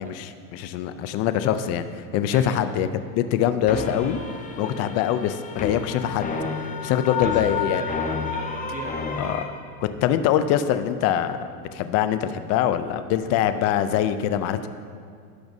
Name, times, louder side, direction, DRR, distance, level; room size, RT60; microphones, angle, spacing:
voice 1, 0.0-1.9 2.1-2.9 3.1-4.2 4.6-6.3 6.8-7.8 9.2-9.5 9.8-11.4 11.7-14.7, left 10 dB, 35° left, 11 dB, 0.4 m, -23 dB
voice 2, 2.3-2.6 4.6-4.9 7.1-9.2, right 3 dB, 15° right, 3 dB, 0.9 m, -38 dB
sound 1, 3.7-9.4, left 5 dB, 15° left, 0.8 m, -30 dB
16.0 x 5.9 x 2.7 m, 2.3 s
supercardioid pair, 130°, 45 cm